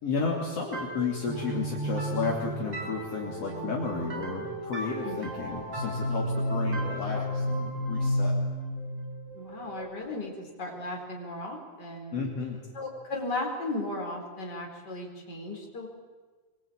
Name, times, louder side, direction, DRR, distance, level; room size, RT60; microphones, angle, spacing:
voice 1, 0.0-8.3 12.1-12.6, left 5 dB, 55° left, -2 dB, 3.9 m, -33 dB
sound 1, 0.7-10.3, equal, 35° right, 5.5 m, -32 dB
voice 2, 9.3-12.2 12.7-15.9, left 2 dB, 35° left, 0 dB, 5.2 m, -36 dB
24.5 x 23.5 x 9.0 m, 1.4 s
omnidirectional pair, 3.4 m